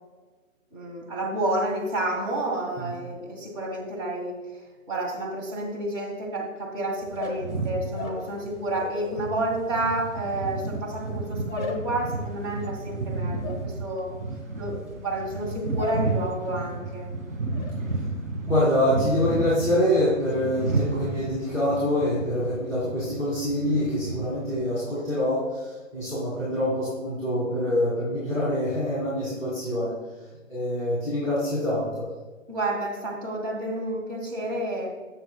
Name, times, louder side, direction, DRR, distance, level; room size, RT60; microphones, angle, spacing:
voice 1, 0.7-4.4 4.9-14.2 14.6-17.1 32.5-34.9, right 1 dB, 25° right, -2 dB, 2.0 m, -30 dB
sound 1, 7.0-9.1 9.4-16.1 16.4-16.9 17.2-17.7, left 4 dB, 20° left, 1.7 m, -39 dB
sound 2, 7.0-24.6, right 3 dB, 75° right, 2.1 m, -32 dB
voice 2, 18.5-29.9 30.5-32.1, left 1 dB, 10° right, -12 dB, 2.5 m, -25 dB
15.5 x 6.8 x 2.2 m, 1.3 s
figure-of-eight pair, 145°, 40 cm